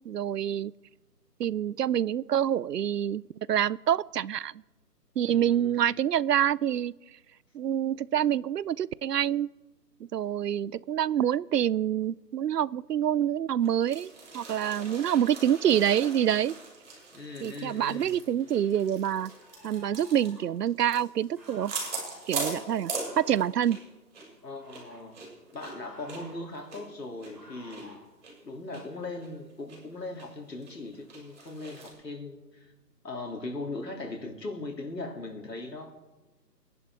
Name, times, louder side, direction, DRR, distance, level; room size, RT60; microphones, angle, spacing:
voice 1, 0.0-0.7 1.4-3.2 3.5-4.5 5.2-6.9 7.5-9.5 10.1-16.5 17.4-19.3 19.6-21.7 22.3-23.8, right 10 dB, 75° right, 23 dB, 0.6 m, -26 dB
voice 2, 5.2-5.8 17.1-18.2 24.4-25.2 25.5-28.0 28.4-32.7 33.0-35.9, left 2 dB, 85° left, 2 dB, 3.4 m, -39 dB
sound 1, 13.6-23.9 24.1-24.3 24.7-27.8 28.2-28.3 28.7-28.8 29.2-29.8 30.2-30.3 30.6-31.9, right 4 dB, 45° right, 7.1 m, -40 dB
sound 2, 18.5-18.6 19.3-20.6 21.4-22.1 22.9-23.5 24.4-25.0 25.8-26.4 27.3-27.9, right 1 dB, ahead, 2.9 m, -52 dB
23.5 x 11.0 x 4.9 m, 1.1 s
figure-of-eight pair, 155°, 49 cm